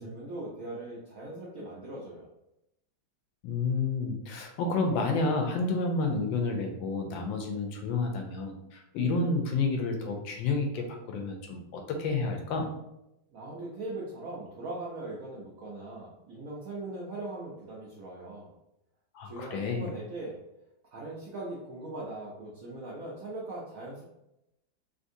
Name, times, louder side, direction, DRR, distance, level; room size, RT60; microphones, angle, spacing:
voice 1, 0.0-2.3 13.3-18.5 19.2-20.4 20.9-24.0, right 2 dB, 75° right, -5 dB, 0.8 m, -40 dB
voice 2, 3.4-12.7 19.1-19.9, left 3 dB, 80° left, 3 dB, 1.3 m, -30 dB
3.5 x 2.6 x 2.6 m, 0.87 s
omnidirectional pair, 2.1 m